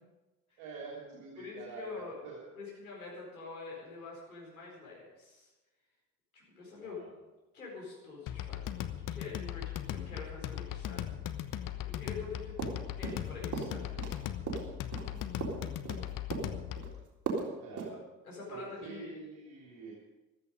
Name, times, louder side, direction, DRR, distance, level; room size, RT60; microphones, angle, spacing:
voice 1, 0.6-2.4 6.8-7.1 12.5-12.9 14.8-15.4 17.6-18.0 18.5-19.9, right 4 dB, 60° right, -3 dB, 3.3 m, -47 dB
voice 2, 1.4-2.2 2.5-5.5 6.3-7.0 7.5-11.1 11.5-12.6 13.0-14.0 18.2-19.1, left 4 dB, 85° left, -4 dB, 4.6 m, -46 dB
sound 1, 8.3-17.0, left 11 dB, 50° left, 1.1 m, -38 dB
sound 2, 12.6-13.3 13.5-14.2 14.5-16.0 16.3-16.9 17.3-17.5 17.8-17.9, right 5 dB, 45° right, 3.6 m, -36 dB
15.0 x 13.5 x 5.3 m, 1.1 s
figure-of-eight pair, 55°, 42 cm